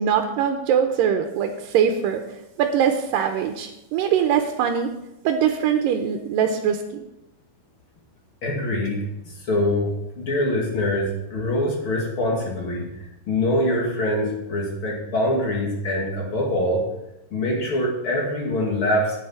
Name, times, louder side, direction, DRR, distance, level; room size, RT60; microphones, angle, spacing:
voice 1, 0.0-2.2 2.6-4.9 5.2-7.0, right 8 dB, 90° right, 5 dB, 2.4 m, -22 dB
voice 2, 8.4-16.8 17.3-19.2, left 1 dB, 40° left, -2 dB, 2.8 m, -24 dB
11.5 x 8.9 x 4.5 m, 0.91 s
omnidirectional pair, 3.8 m